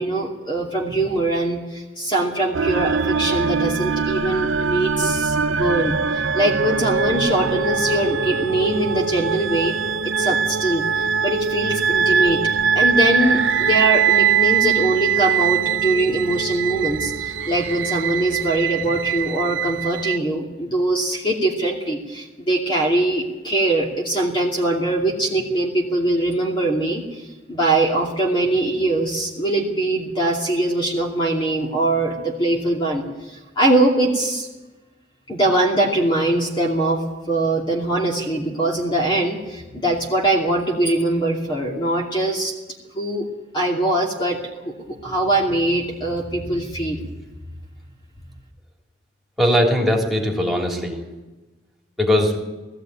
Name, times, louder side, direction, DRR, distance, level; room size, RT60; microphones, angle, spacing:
voice 1, 0.0-9.8 10.0-12.4 12.7-27.2 27.5-34.5 35.3-42.5 42.9-43.3 43.5-47.1, right 1 dB, 25° left, -2 dB, 2.7 m, -22 dB
sound 1, 2.5-20.2, right 6 dB, 80° right, 0.7 m, -22 dB
voice 2, 49.4-51.0 52.0-52.4, equal, ahead, -2 dB, 3.3 m, -19 dB
19.5 x 15.0 x 9.1 m, 1.1 s
head